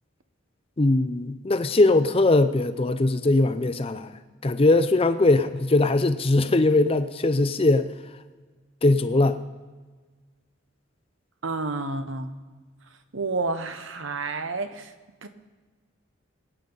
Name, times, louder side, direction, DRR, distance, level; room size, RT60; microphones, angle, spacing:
voice 1, 0.8-4.1 4.4-7.9 8.8-9.4, left 2 dB, 30° left, 0.5 m, -20 dB
voice 2, 11.4-12.3 13.1-14.9 15.2-15.3, right 3 dB, 70° right, 1.0 m, -30 dB
23.5 x 9.0 x 3.9 m
head